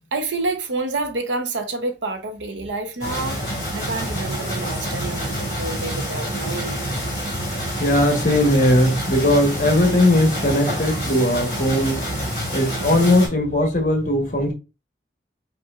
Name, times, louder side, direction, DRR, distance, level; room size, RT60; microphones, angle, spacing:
voice 1, 0.1-6.8, right 3 dB, 85° right, 0.8 m, -28 dB
sound 1, 3.0-13.3, equal, 25° left, 2.3 m, -27 dB
voice 2, 7.8-12.0 12.5-14.5, left 1 dB, 45° left, 1.0 m, -18 dB
5.3 x 2.6 x 2.4 m
head